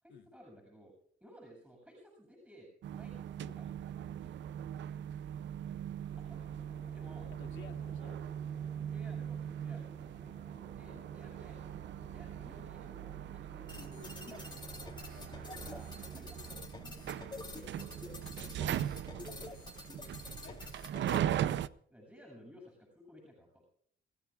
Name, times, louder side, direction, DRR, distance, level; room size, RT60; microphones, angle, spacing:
voice 1, 0.0-0.9 1.2-4.4 4.7-5.0 6.2-6.5 6.9-7.3 7.9-8.2 8.7-9.9 10.7-11.6 12.0-14.9 15.5-18.7 19.2-19.9 21.9-23.6, equal, 5° right, -1 dB, 7.8 m, -57 dB
sound 1, 2.8-21.7, right 10 dB, 65° right, 0.6 m, -40 dB
sound 2, 6.1-16.7, right 3 dB, 45° right, 2.7 m, -56 dB
voice 2, 7.3-8.2 10.9-11.1 15.1-15.6 20.4-20.6, left 8 dB, 70° left, 4 dB, 2.5 m, -56 dB
sound 3, 13.7-21.2, left 3 dB, 20° left, 3.4 m, -48 dB
28.5 x 15.5 x 2.5 m, 0.66 s
cardioid pair, 90°, 20 cm